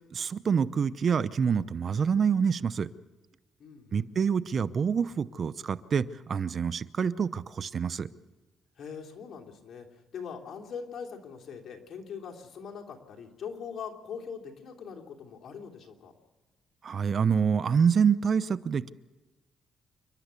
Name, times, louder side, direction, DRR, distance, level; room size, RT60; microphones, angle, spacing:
voice 1, 0.0-2.9 3.9-8.1 16.8-18.9, right 6 dB, 50° right, 15 dB, 0.7 m, -26 dB
voice 2, 3.6-4.1 8.8-16.1, left 6 dB, 60° left, 1 dB, 3.1 m, -42 dB
28.5 x 12.0 x 8.3 m, 1.1 s
cardioid pair, 90°, 0 cm